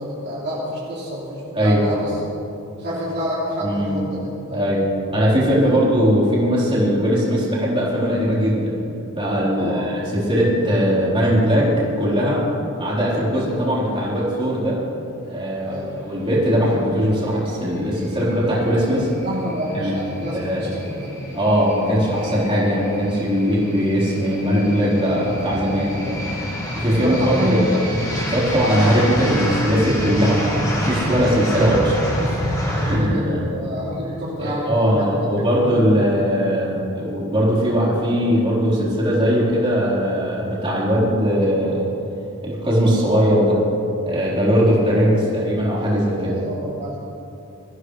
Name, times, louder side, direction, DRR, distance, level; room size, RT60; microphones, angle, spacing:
voice 1, 0.0-2.1 2.8-4.7 5.6-5.8 9.6-9.9 15.6-16.0 19.0-21.1 26.0-26.1 27.0-27.8 32.3-35.8 46.2-47.0, equal, 50° right, -8 dB, 3.1 m, -28 dB
voice 2, 1.5-1.9 3.6-4.0 4.5-4.8 5.1-8.8 9.1-11.7 12.0-12.4 12.8-14.8 15.3-19.1 19.7-19.9 20.3-20.6 21.3-25.9 26.8-27.7 28.3-32.4 32.8-33.3 34.4-41.9 42.4-43.6 44.0-46.4, equal, 25° right, -7 dB, 4.1 m, -20 dB
sound 1, 17.2-33.0, equal, 15° left, 2.5 m, -28 dB
23.0 x 15.0 x 3.3 m, 2.7 s
head